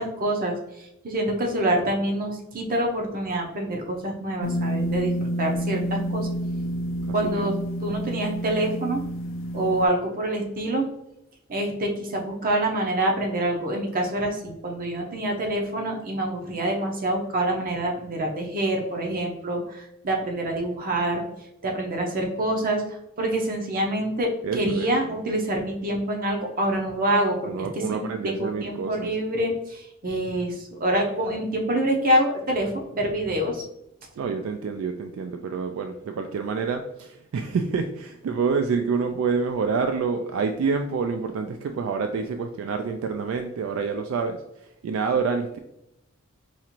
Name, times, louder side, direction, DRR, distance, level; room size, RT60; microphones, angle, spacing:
voice 1, 0.0-6.3 7.1-7.5 7.8-9.0 9.5-10.9 11.5-21.3 21.6-33.6, right 1 dB, 45° right, 1 dB, 0.7 m, -26 dB
sound 1, 4.4-9.9, equal, 65° left, 0.4 m, -29 dB
voice 2, 24.4-24.9 27.4-29.1 34.2-44.4 44.8-45.6, right 5 dB, 70° right, 6 dB, 0.3 m, -27 dB
4.2 x 2.5 x 2.9 m, 0.84 s
head